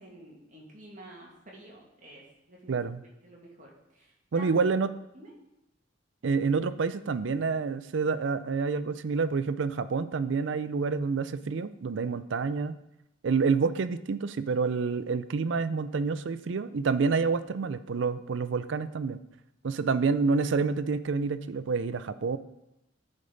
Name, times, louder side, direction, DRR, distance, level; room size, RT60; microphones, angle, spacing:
voice 1, 0.0-2.8 3.2-4.6 5.1-5.3, right 1 dB, 40° right, -3 dB, 2.2 m, -49 dB
voice 2, 2.7-3.0 4.3-4.9 6.2-12.8 13.2-19.2 19.6-22.4, right 4 dB, 65° right, 14 dB, 0.4 m, -28 dB
13.0 x 5.4 x 4.0 m, 0.89 s
head